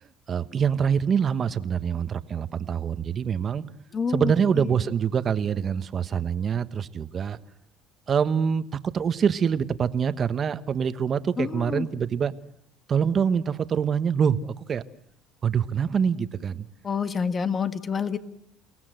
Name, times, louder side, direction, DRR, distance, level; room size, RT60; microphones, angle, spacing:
voice 1, 0.0-3.6 4.1-7.4 8.1-12.3 12.9-14.8 15.4-16.7, right 7 dB, 40° right, 12 dB, 1.2 m, -25 dB
voice 2, 3.9-4.7 11.4-11.9 16.8-18.2, left 6 dB, 35° left, 11 dB, 1.7 m, -28 dB
29.5 x 17.5 x 7.9 m, 0.71 s
supercardioid pair, 95°, 0 cm